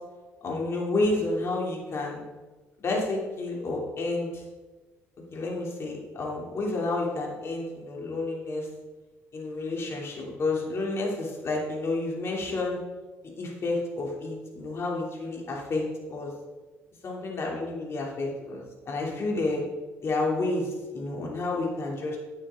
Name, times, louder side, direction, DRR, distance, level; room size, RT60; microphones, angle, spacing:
voice 1, 0.4-2.2 2.8-4.4 5.3-8.7 9.3-12.8 13.2-16.3 17.0-19.6 20.0-22.2, left 2 dB, 50° left, -1 dB, 3.0 m, -30 dB
9.9 x 8.8 x 3.8 m, 1.2 s
supercardioid pair, 75°, 6 cm